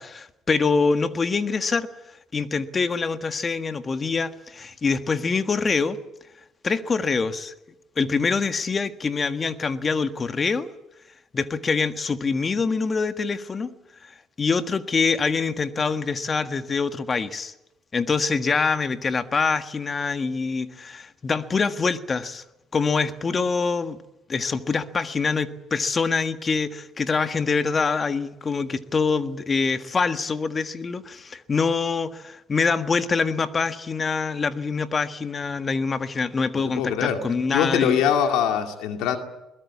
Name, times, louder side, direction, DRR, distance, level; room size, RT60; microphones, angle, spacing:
voice 1, 0.0-1.9 2.3-6.0 6.6-7.5 7.9-10.7 11.3-13.7 14.0-17.5 17.9-22.4 22.7-24.0 24.3-38.1, left 4 dB, 35° left, 1.6 m, -25 dB
voice 2, 36.8-37.2 37.5-39.2, left 9 dB, 75° left, 2.4 m, -22 dB
22.0 x 20.5 x 8.6 m
supercardioid pair, 80°, 0 cm